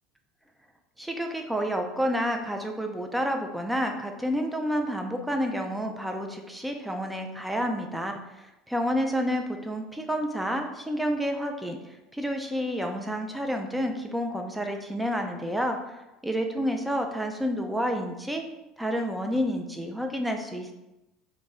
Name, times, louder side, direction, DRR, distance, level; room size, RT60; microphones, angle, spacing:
voice 1, 1.0-11.8 12.1-18.4 18.8-20.7, equal, 5° right, 3 dB, 0.5 m, -29 dB
2.7 x 2.5 x 3.9 m, 0.97 s
supercardioid pair, 90°, 0 cm